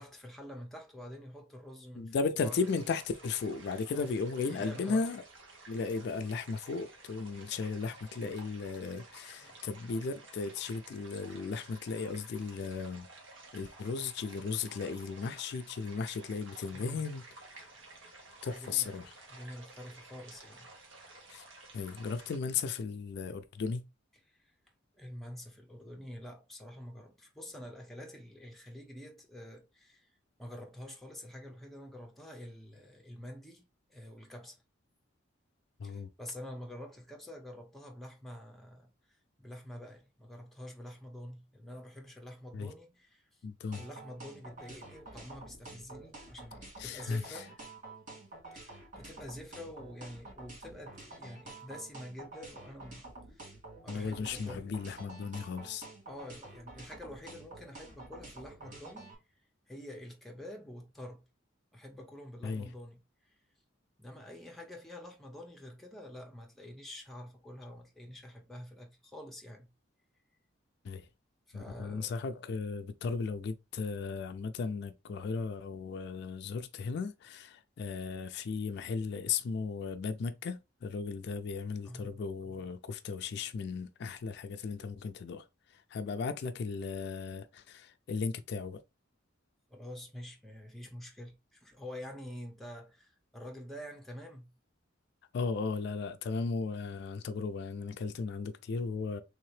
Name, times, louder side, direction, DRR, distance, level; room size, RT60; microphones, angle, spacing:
voice 1, 0.0-2.7 3.9-4.1 4.4-5.0 9.4-9.6 16.7-17.1 18.0-18.2 18.5-20.7 24.3-24.5 24.9-30.1 30.4-34.6 35.8-43.5 43.7-47.6 48.5-54.7 56.1-59.1 59.7-61.2 61.7-63.3 64.0-69.7 71.5-72.2 81.8-82.2 89.7-94.5, left 1 dB, ahead, 0.7 m, -47 dB
voice 2, 2.0-5.2 5.7-13.1 13.5-17.7 18.4-19.1 21.3-21.4 21.7-23.9 35.8-36.1 42.5-42.7 43.4-43.9 46.8-47.4 53.9-55.9 62.4-62.7 70.8-71.1 71.5-88.8 95.3-99.2, left 4 dB, 60° left, 0.3 m, -36 dB
sound 1, 2.5-22.4, right 2 dB, 75° right, 1.1 m, -54 dB
sound 2, 43.7-59.1, right 2 dB, 40° right, 1.4 m, -49 dB
3.4 x 2.8 x 3.1 m
head